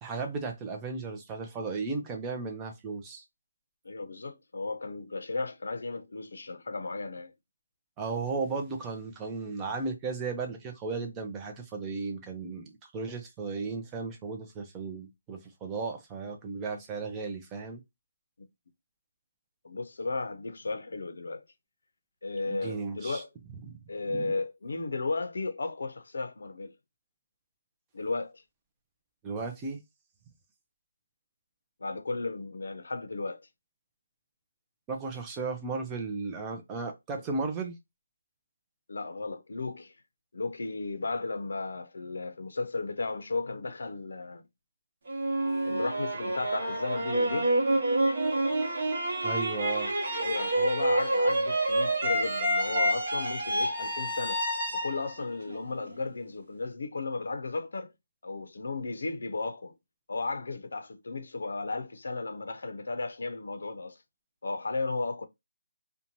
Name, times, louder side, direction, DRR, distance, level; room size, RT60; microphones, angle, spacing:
voice 1, 0.0-3.2 8.0-17.8 22.5-23.2 23.7-23.8 24.1-24.4 29.2-29.8 34.9-37.8 49.2-49.9, right 4 dB, 15° right, 0.4 m, -35 dB
voice 2, 3.8-7.3 19.6-21.4 22.2-23.3 23.9-26.7 27.9-28.4 31.8-33.5 38.9-39.9 40.3-44.4 45.6-47.5 50.2-54.4 54.7-57.9 58.2-59.7 60.1-64.0 64.4-65.3, left 3 dB, 70° left, 0.5 m, -34 dB
sound 1, 45.1-56.1, right 1 dB, 45° right, 1.0 m, -28 dB
2.6 x 2.2 x 2.9 m
hypercardioid pair, 170°, 0 cm